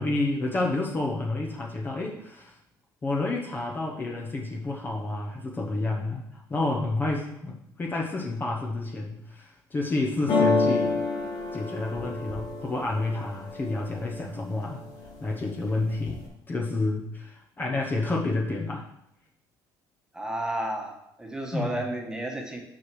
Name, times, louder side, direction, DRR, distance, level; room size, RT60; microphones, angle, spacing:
voice 1, 0.0-2.6 3.0-11.0 11.5-14.8 15.2-16.2 16.5-18.9 21.5-21.8, left 2 dB, 25° left, -1 dB, 1.0 m, -29 dB
sound 1, 10.3-14.1 14.6-15.2 15.5-16.3, left 3 dB, 80° left, 2.7 m, -28 dB
voice 2, 20.1-22.6, right 1 dB, 10° right, 1 dB, 1.4 m, -32 dB
6.0 x 4.8 x 6.2 m, 0.80 s
cardioid pair, 120°, 8 cm